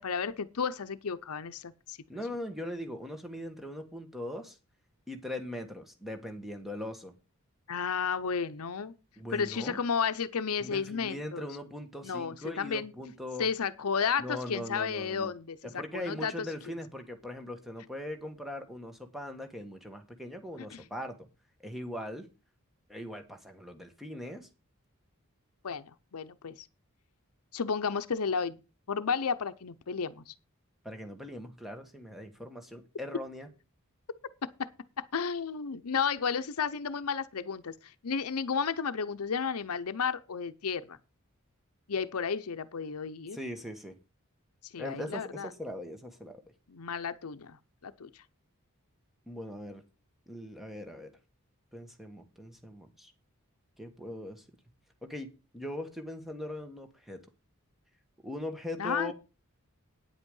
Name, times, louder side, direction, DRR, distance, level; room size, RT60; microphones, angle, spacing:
voice 1, 0.0-2.0 7.7-8.9 9.3-11.4 12.0-12.9 13.4-15.6 15.9-16.3 20.7-20.8 25.6-26.7 27.5-28.6 28.9-30.3 34.4-34.7 35.0-41.0 41.9-43.4 44.7-45.5 46.7-47.6 47.8-48.1 58.8-59.1, left 6 dB, 90° left, 0.7 m, -32 dB
voice 2, 2.1-4.6 5.1-7.1 9.2-9.8 10.6-13.5 14.2-15.3 15.7-21.3 21.6-22.3 22.9-24.5 30.8-33.5 43.3-44.0 44.8-46.4 49.3-49.8 50.3-51.1 51.7-53.1 53.8-54.4 55.0-55.3 55.5-57.2 58.2-59.1, left 1 dB, ahead, 1.4 m, -40 dB
9.5 x 8.1 x 5.4 m
head